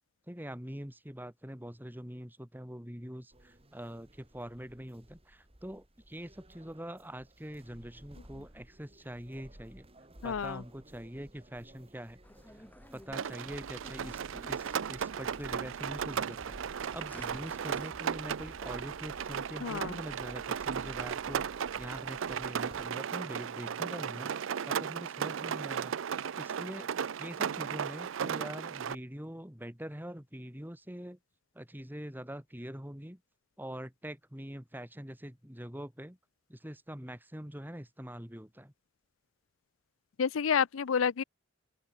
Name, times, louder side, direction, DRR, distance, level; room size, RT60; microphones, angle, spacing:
voice 1, 0.3-9.9 10.2-12.2 12.9-24.3 24.7-25.9 26.4-26.9 27.2-31.2 31.5-33.2 33.6-36.2 36.5-38.7, equal, 10° right, 2.8 m, -44 dB
sound 1, 3.3-22.9, right 1 dB, 30° right, 3.0 m, -55 dB
voice 2, 10.2-10.6 19.6-20.0 40.2-41.2, left 6 dB, 80° left, 0.5 m, -29 dB
sound 2, 12.2-17.9, left 1 dB, 10° left, 2.5 m, -54 dB
Rain, 13.1-28.9, right 7 dB, 70° right, 0.5 m, -36 dB
open air
head